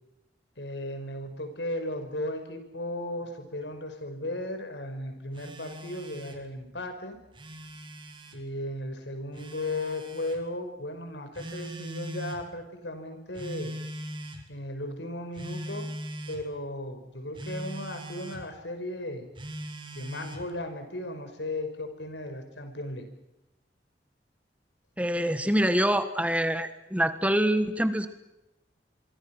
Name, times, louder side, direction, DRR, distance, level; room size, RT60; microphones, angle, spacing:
voice 1, 0.6-7.2 8.3-13.7 14.5-15.9 16.3-19.3 19.9-23.0, left 1 dB, 90° left, 7 dB, 5.4 m, -36 dB
Telephone, 5.3-6.4 7.2-8.4 9.3-10.4 11.4-12.5 13.4-14.5 15.3-16.4 17.4-18.5 19.4-20.5, equal, 30° right, 3.0 m, -40 dB
voice 2, 25.0-28.1, right 1 dB, 10° right, 10 dB, 1.4 m, -25 dB
27.0 x 24.0 x 6.1 m, 0.92 s
head